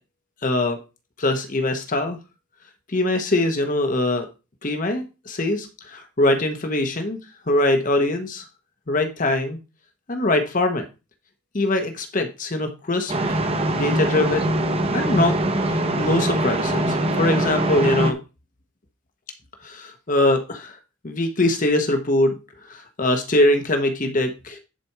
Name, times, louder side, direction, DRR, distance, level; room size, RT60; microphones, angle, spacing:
voice 1, 0.4-0.8 1.2-2.2 2.9-4.3 4.6-7.2 7.5-8.4 8.9-9.6 10.1-10.9 11.5-13.4 13.7-14.5 14.9-18.2 19.6-20.8 21.0-22.4 22.7-24.6, left 1 dB, 40° left, 5 dB, 1.1 m, -22 dB
sound 1, 13.1-18.1, right 1 dB, 30° right, 1.0 m, -22 dB
10.0 x 4.3 x 4.7 m, 0.29 s
head